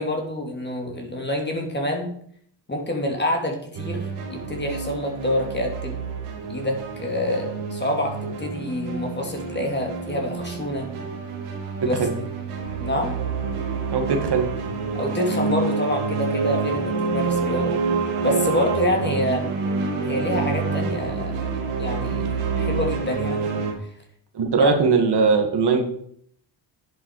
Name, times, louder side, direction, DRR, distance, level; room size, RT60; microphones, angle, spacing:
voice 1, 0.0-2.1 2.7-6.0 6.5-10.9 11.8-12.0 12.8-13.2 14.9-17.7 18.2-19.6 20.0-21.4 21.8-22.3 22.5-23.5 24.6-24.7, left 1 dB, 20° left, 1 dB, 2.8 m, -27 dB
sound 1, 3.7-23.7, right 4 dB, 85° right, 2.6 m, -27 dB
voice 2, 11.8-12.1 13.9-14.5 24.3-25.8, right 5 dB, 55° right, 5 dB, 1.9 m, -20 dB
10.5 x 7.8 x 4.7 m, 0.64 s
cardioid pair, 100°, 49 cm